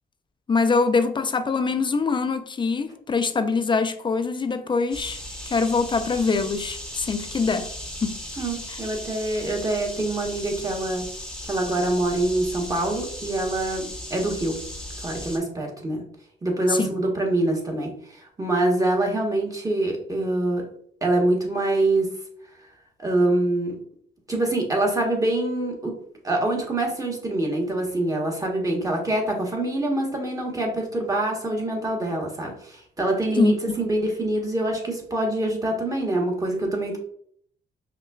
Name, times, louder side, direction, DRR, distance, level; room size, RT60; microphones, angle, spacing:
voice 1, 0.5-5.2 5.5-7.7 8.0-8.1 8.7-8.8 16.7-16.9 33.4-33.7, left 4 dB, 25° left, 0.4 m, -24 dB
sound 1, 4.9-15.4, left 1 dB, 5° left, 0.9 m, -37 dB
voice 2, 8.4-11.1 11.5-14.6 15.0-16.0 16.4-20.6 21.0-22.1 23.0-23.8 24.3-25.9 26.2-37.0, right 2 dB, 15° right, 1.1 m, -25 dB
5.4 x 2.2 x 2.3 m
cardioid pair, 90°, 20 cm